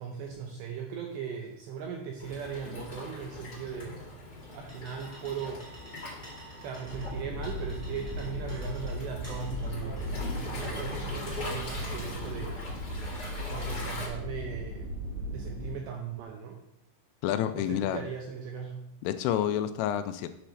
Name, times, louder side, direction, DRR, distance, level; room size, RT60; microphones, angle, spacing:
voice 1, 0.0-4.0 4.5-5.6 6.6-12.6 12.9-13.0 13.5-14.9 15.3-16.6 17.5-18.9, right 6 dB, 80° right, 1 dB, 2.5 m, -38 dB
Waves surf, 2.2-14.1, left 2 dB, 50° left, 1.2 m, -42 dB
sound 1, 4.2-12.2, equal, 20° right, 0.4 m, -51 dB
sound 2, 6.8-15.7, equal, 65° right, 4.0 m, -37 dB
voice 2, 17.2-18.0 19.0-20.3, left 11 dB, 85° left, 10 dB, 3.0 m, -29 dB
8.6 x 4.3 x 6.3 m, 0.77 s
omnidirectional pair, 5.9 m